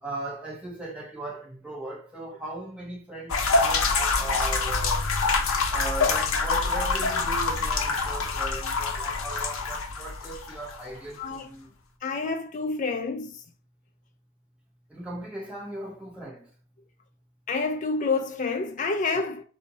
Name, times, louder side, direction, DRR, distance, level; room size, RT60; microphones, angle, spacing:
voice 1, 0.0-5.0 5.7-11.7 14.9-16.5 19.1-19.3, right 2 dB, 5° right, 1.1 m, -38 dB
sound 1, 3.3-10.9, left 4 dB, 70° left, 0.6 m, -26 dB
voice 2, 11.2-11.5 12.0-13.4 17.5-19.4, left 4 dB, 35° left, 0.3 m, -28 dB
4.2 x 2.7 x 4.0 m
head